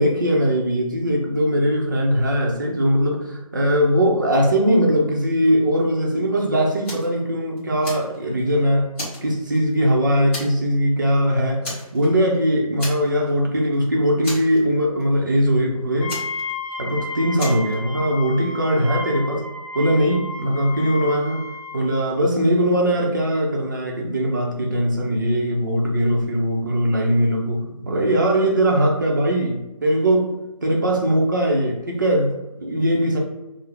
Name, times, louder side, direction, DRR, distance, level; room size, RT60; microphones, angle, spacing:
voice 1, 0.0-8.9 9.2-11.6 11.9-16.1 16.8-19.4 19.7-21.4 21.7-30.3 30.6-33.2, equal, 30° right, -1 dB, 0.6 m, -20 dB
Fire, 6.8-7.2 7.6-8.5 8.9-9.9 10.3-10.7 11.0-11.2 11.6-12.4 12.8-13.4 13.6-13.7 14.2-15.0 16.1-16.9 17.4-17.7, left 1 dB, 20° left, 1.1 m, -34 dB
Wind instrument woodwind instrument, 16.0-21.9, left 3 dB, ahead, 0.8 m, -33 dB
5.9 x 2.0 x 3.3 m, 1.0 s
figure-of-eight pair, 165°, 20 cm